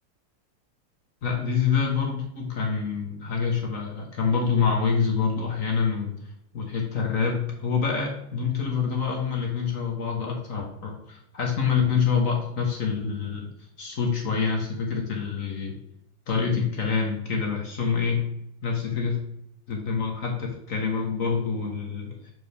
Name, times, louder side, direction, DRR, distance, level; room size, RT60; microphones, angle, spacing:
voice 1, 1.2-6.2 6.5-13.4 13.8-15.7 16.3-18.3 18.6-19.1 19.7-22.2, left 6 dB, 50° left, 0 dB, 1.1 m, -26 dB
6.7 x 4.5 x 3.4 m, 0.76 s
omnidirectional pair, 2.4 m